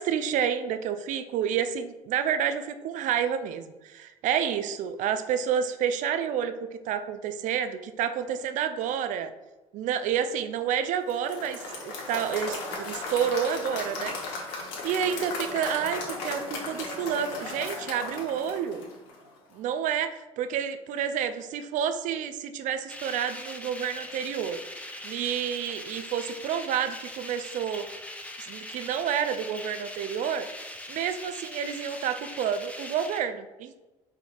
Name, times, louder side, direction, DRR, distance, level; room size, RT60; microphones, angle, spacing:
voice 1, 0.0-9.3 9.7-14.1 14.8-18.9 19.5-24.6 25.0-27.9 28.4-30.5 30.9-33.8, right 8 dB, 45° right, 11 dB, 0.4 m, -29 dB
Applause / Crowd, 11.1-19.3, left 3 dB, 65° left, 1.0 m, -36 dB
sound 1, 22.9-33.2, left 1 dB, 5° left, 0.5 m, -41 dB
4.7 x 3.5 x 2.4 m, 1.1 s
figure-of-eight pair, 60°, 18 cm